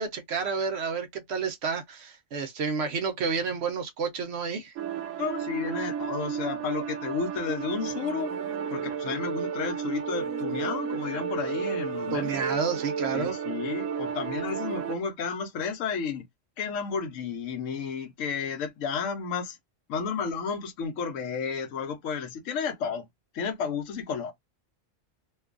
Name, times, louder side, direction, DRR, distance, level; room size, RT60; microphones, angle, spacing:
voice 1, 0.0-4.7 12.1-13.4, right 5 dB, 65° right, 0.8 m, -30 dB
sound 1, 4.8-15.0, right 7 dB, 85° right, 1.0 m, -32 dB
voice 2, 5.2-8.3 8.7-12.3 13.1-16.2 16.6-19.6 19.9-23.1 23.3-24.3, left 6 dB, 80° left, 1.0 m, -32 dB
2.5 x 2.3 x 2.4 m
omnidirectional pair, 1.3 m